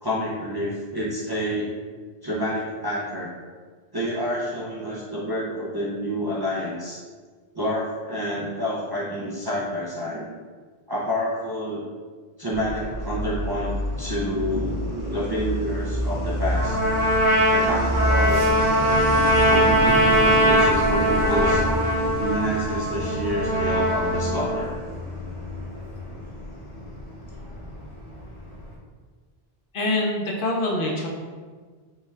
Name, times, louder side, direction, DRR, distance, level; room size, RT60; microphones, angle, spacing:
voice 1, 0.0-1.7 2.2-3.3 3.9-7.0 7.5-10.4 10.9-11.9 12.4-16.8 17.5-18.5 19.5-21.7 22.2-24.8, equal, 30° right, -6 dB, 0.5 m, -28 dB
Truck, 12.5-28.8, equal, 75° left, 1.2 m, -29 dB
Trumpet, 16.5-24.6, equal, 50° right, 1.4 m, -21 dB
voice 2, 29.7-31.1, left 2 dB, 60° left, -2 dB, 0.8 m, -25 dB
5.3 x 2.3 x 3.3 m, 1.5 s
omnidirectional pair, 1.1 m